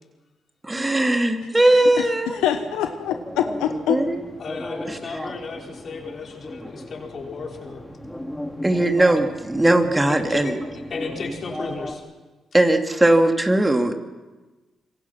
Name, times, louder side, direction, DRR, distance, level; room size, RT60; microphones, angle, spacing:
voice 1, 0.6-2.4 3.9-4.2 4.9-5.0 8.6-10.5 12.5-13.9, right 1 dB, 20° right, 5 dB, 2.6 m, -19 dB
voice 2, 1.6-4.0, left 10 dB, 85° left, 7 dB, 1.1 m, -25 dB
sound 1, 1.8-11.9, left 1 dB, 5° left, 3.1 m, -35 dB
voice 3, 4.4-7.8 9.1-9.2 10.1-10.6 10.9-12.0, left 4 dB, 55° left, 0 dB, 5.2 m, -34 dB
26.0 x 22.5 x 6.0 m, 1.2 s
supercardioid pair, 50°, 0 cm